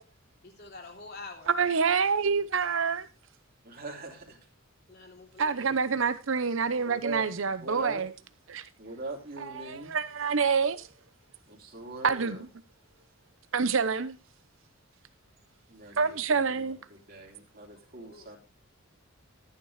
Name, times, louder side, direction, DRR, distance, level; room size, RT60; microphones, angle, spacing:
voice 1, 0.4-1.6 4.9-6.1 17.9-18.3, left 3 dB, 50° left, 3.1 m, -47 dB
voice 2, 1.5-3.1 5.4-8.1 8.5-8.6 9.7-10.9 12.0-12.4 13.5-14.2 16.0-16.8, right 5 dB, 70° right, 0.8 m, -27 dB
voice 3, 3.6-4.4 6.8-7.2 7.6-8.0 8.8-9.9 11.5-12.4 15.7-18.4, right 3 dB, 45° right, 2.9 m, -41 dB
14.0 x 9.5 x 3.2 m
head